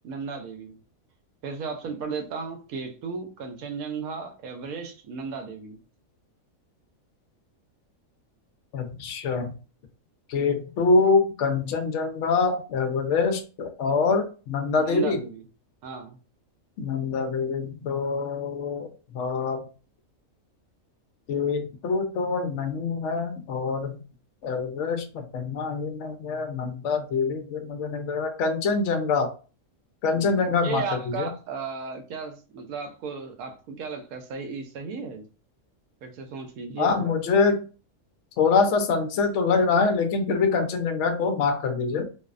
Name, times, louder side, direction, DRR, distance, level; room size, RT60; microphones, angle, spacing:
voice 1, 0.0-0.8 1.4-5.8 14.9-15.4 15.8-16.2 30.1-35.2 36.0-37.2, right 5 dB, 85° right, 5 dB, 1.0 m, -35 dB
voice 2, 8.7-9.5 10.3-15.2 16.8-19.6 21.3-24.0 24.4-29.3 30.0-31.3 36.8-37.6 38.4-42.1, left 4 dB, 70° left, 6 dB, 0.8 m, -25 dB
2.6 x 2.1 x 2.4 m, 0.36 s
omnidirectional pair, 1.5 m